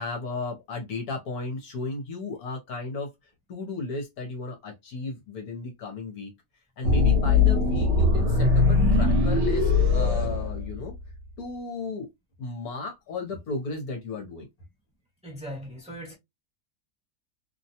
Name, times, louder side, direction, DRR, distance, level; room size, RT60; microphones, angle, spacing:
voice 1, 0.0-3.1 3.5-6.3 6.8-10.9 11.4-12.1 12.4-14.5, left 3 dB, 65° left, 1.2 m, -34 dB
sound 1, 6.8-11.1, left 3 dB, 50° right, 1.1 m, -21 dB
voice 2, 15.2-16.1, equal, 5° right, 1.1 m, -39 dB
2.9 x 2.2 x 2.7 m
omnidirectional pair, 1.8 m